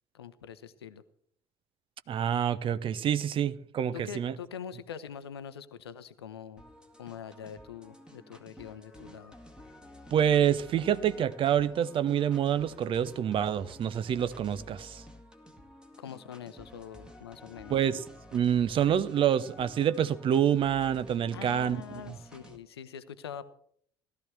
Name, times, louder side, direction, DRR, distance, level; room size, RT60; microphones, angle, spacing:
voice 1, 0.1-1.0 3.9-6.6 7.0-9.3 16.0-17.9 21.3-23.5, left 8 dB, 75° left, 0.7 m, -44 dB
voice 2, 2.1-4.3 10.1-15.0 17.7-18.0 18.3-21.8, right 9 dB, 40° right, 0.7 m, -27 dB
sound 1, 6.6-22.6, left 1 dB, 5° right, 1.9 m, -52 dB
16.5 x 12.5 x 3.3 m
figure-of-eight pair, 55°, 13 cm